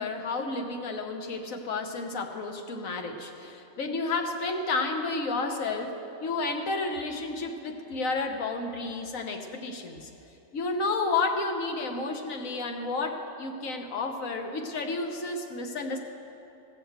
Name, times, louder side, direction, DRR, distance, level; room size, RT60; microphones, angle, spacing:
voice 1, 0.0-10.1 10.5-16.0, left 3 dB, 85° left, 4 dB, 1.4 m, -31 dB
15.0 x 6.6 x 7.9 m, 3.0 s
omnidirectional pair, 1.4 m